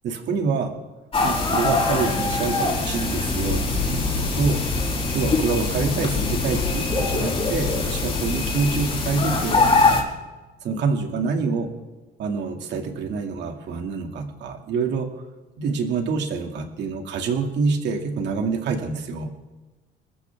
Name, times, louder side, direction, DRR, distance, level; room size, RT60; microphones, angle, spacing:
voice 1, 0.0-0.7 1.2-4.6 5.1-9.7 10.6-11.7 12.2-15.2 15.6-19.3, right 5 dB, 65° right, 3 dB, 2.4 m, -26 dB
sound 1, 1.1-10.0, left 3 dB, 30° left, 5.0 m, -23 dB
28.0 x 14.0 x 3.6 m, 1.1 s
cardioid pair, 140°, 19 cm